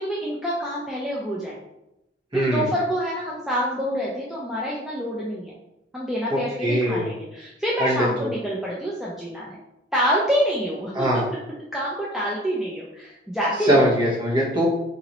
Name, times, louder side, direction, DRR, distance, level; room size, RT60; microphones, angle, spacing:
voice 1, 0.0-1.6 2.3-5.5 5.9-9.6 9.9-11.1 11.7-13.9, equal, ahead, -6 dB, 0.4 m, -27 dB
voice 2, 2.3-2.7 6.3-7.1 7.8-8.3 10.9-11.3 13.6-14.7, equal, 25° right, -6 dB, 1.1 m, -22 dB
3.9 x 2.8 x 3.0 m, 0.90 s
head